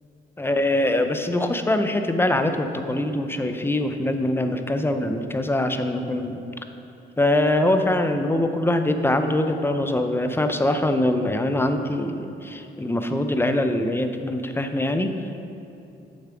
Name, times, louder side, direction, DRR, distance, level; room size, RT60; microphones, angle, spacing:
voice 1, 0.4-6.4 7.2-15.1, left 1 dB, 10° left, 7 dB, 0.5 m, -23 dB
7.2 x 5.7 x 4.9 m, 2.8 s
cardioid pair, 90°, 20 cm